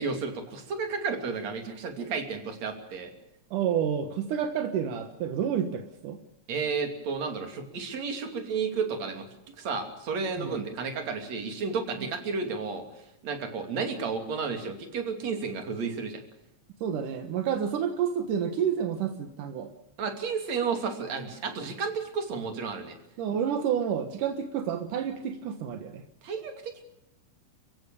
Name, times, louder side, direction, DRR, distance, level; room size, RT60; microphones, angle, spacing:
voice 1, 0.0-3.1 6.5-9.3 9.6-12.9 13.2-16.2 20.0-23.0 26.2-26.9, right 5 dB, 60° right, 6 dB, 3.9 m, -32 dB
voice 2, 3.5-6.2 10.4-10.6 16.8-19.7 23.2-26.0, right 8 dB, 85° right, 7 dB, 2.9 m, -29 dB
29.5 x 16.0 x 6.9 m, 0.84 s
omnidirectional pair, 3.6 m